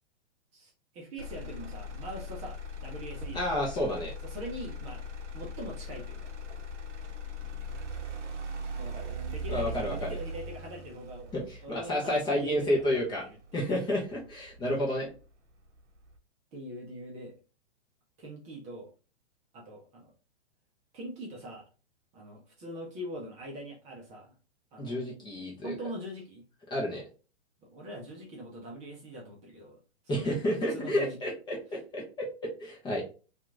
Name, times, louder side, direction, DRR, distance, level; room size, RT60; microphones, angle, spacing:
voice 1, 0.5-3.6 4.2-5.0 5.3-6.3 8.8-11.3 11.6-13.6 16.5-17.3 18.2-18.9 19.5-20.1 20.9-21.6 22.1-24.3 24.7-25.0 25.6-26.4 27.6-29.8 30.0-31.2, right 1 dB, 20° right, -1 dB, 0.7 m, -43 dB
Motor vehicle (road), 1.2-15.2 15.7-16.2, equal, 85° right, 0.7 m, -40 dB
voice 2, 3.3-4.1 9.5-10.2 11.3-13.2 13.5-15.1 24.8-25.7 26.7-27.0 30.1-33.0, left 1 dB, 15° left, -3 dB, 0.7 m, -30 dB
2.8 x 2.5 x 2.5 m, 0.35 s
hypercardioid pair, 135°, 35 cm